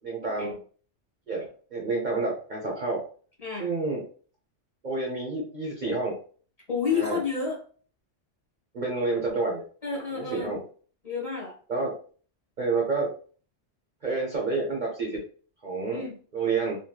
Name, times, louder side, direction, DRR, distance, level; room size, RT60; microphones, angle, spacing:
voice 1, 0.0-0.6 1.3-3.0 3.6-4.0 4.8-6.1 6.9-7.2 8.7-9.6 10.1-10.6 11.7-11.9 12.6-13.1 14.0-15.2 15.6-16.0 16.3-16.8, right 3 dB, 45° right, -2 dB, 0.8 m, -29 dB
voice 2, 3.4-3.7 6.7-7.6 9.8-10.6 11.0-11.5 15.9-16.2, left 5 dB, 35° left, -3 dB, 1.2 m, -30 dB
3.0 x 2.8 x 2.2 m, 0.42 s
omnidirectional pair, 1.2 m